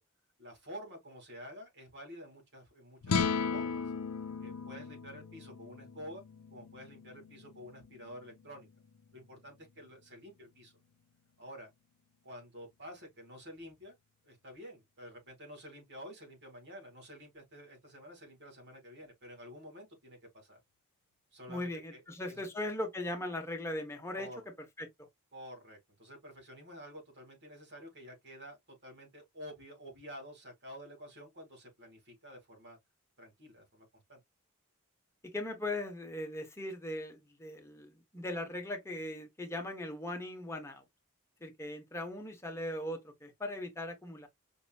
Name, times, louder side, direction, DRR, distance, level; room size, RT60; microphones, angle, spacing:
voice 1, 0.4-3.8 4.4-6.2 6.5-8.7 9.1-10.7 11.4-11.7 12.2-13.9 14.2-20.6 21.3-22.5 24.1-24.4 25.3-32.8 33.2-34.2, equal, 50° right, 2.3 m, -50 dB
sound 1, 3.0-9.4, left 5 dB, 90° left, 0.6 m, -37 dB
voice 2, 21.5-24.3 24.8-24.9 35.2-40.8 41.4-44.3, left 1 dB, 10° left, 1.0 m, -39 dB
5.3 x 3.0 x 2.3 m
head